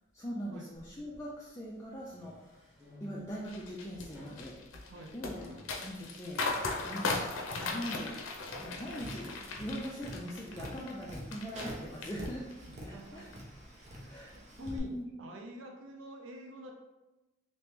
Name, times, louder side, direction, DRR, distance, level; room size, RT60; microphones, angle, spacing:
voice 1, 0.1-2.3 3.0-4.6 5.1-5.4 5.8-6.4 6.8-7.2 7.5-8.2 8.6-12.4 12.8-13.3 14.1-15.1, equal, 15° left, -5 dB, 0.4 m, -41 dB
sound 1, 0.7-1.3 1.8-3.4 4.0-5.8, left 2 dB, 5° right, 1.1 m, -53 dB
sound 2, 3.5-11.7 12.0-12.7 13.1-13.3, left 3 dB, 85° left, 0.6 m, -38 dB
Tap, 8.4-14.8, equal, 35° right, 0.6 m, -47 dB
voice 2, 12.7-13.2 14.0-16.7, right 1 dB, 80° right, 1 dB, 0.5 m, -49 dB
2.9 x 2.8 x 3.5 m, 1.0 s
head